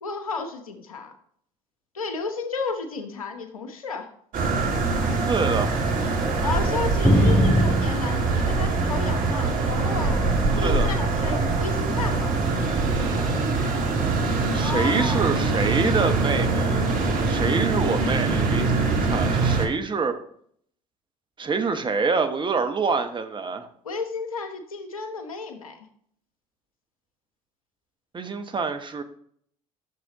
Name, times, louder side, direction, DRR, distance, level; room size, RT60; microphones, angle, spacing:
voice 1, 0.0-1.1 1.9-4.1 6.4-12.4 14.6-15.4 23.8-25.8, left 4 dB, 85° left, 7 dB, 1.0 m, -33 dB
sound 1, 4.3-19.7, right 3 dB, 50° right, 1.9 m, -23 dB
voice 2, 5.3-5.7 10.6-10.9 14.5-16.8 17.3-20.1 21.4-23.7 28.1-29.0, right 4 dB, 25° right, 7 dB, 1.2 m, -26 dB
sound 2, 7.0-9.3 9.6-10.6 11.4-11.8 12.8-13.0, equal, 10° left, 3.3 m, -24 dB
11.5 x 6.9 x 3.0 m, 0.63 s
hypercardioid pair, 60°, 17 cm